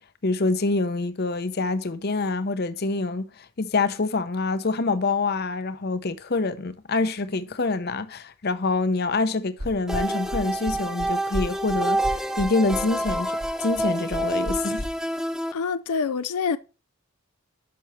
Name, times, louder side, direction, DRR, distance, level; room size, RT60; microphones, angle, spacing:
voice 1, 0.2-12.0 12.4-13.3 13.6-14.9, left 3 dB, 45° left, 0.7 m, -26 dB
sound 1, 9.6-14.9, equal, 80° right, 4.4 m, -33 dB
sound 2, 9.9-15.5, right 1 dB, ahead, 0.4 m, -28 dB
voice 2, 15.5-16.6, left 5 dB, 90° left, 0.5 m, -26 dB
10.5 x 6.1 x 3.1 m
head